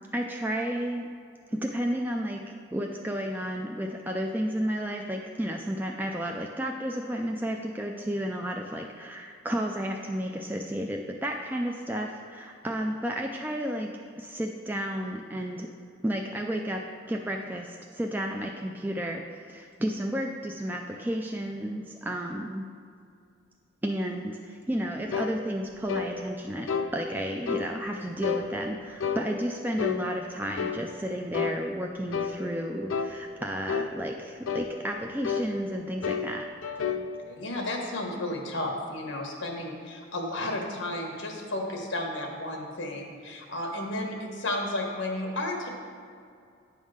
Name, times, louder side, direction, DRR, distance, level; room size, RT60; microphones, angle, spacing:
voice 1, 0.1-1.1 1.5-13.9 14.2-15.7 16.0-16.8 17.1-22.6 23.8-36.4, equal, 10° right, 1 dB, 0.3 m, -32 dB
sound 1, 25.1-25.4 25.9-26.1 26.7-26.9 27.5-27.7 28.2-28.5 29.0-29.3 29.8-30.0 30.6-30.8 31.3-31.6 32.1-32.4 32.9-33.1 33.7-33.9 34.4-34.7 35.2-35.5 36.0-36.3 36.6-37.1, left 6 dB, 85° left, 0.5 m, -29 dB
voice 2, 37.3-45.7, left 1 dB, 70° left, 1 dB, 1.3 m, -33 dB
9.8 x 3.6 x 6.3 m, 2.3 s
head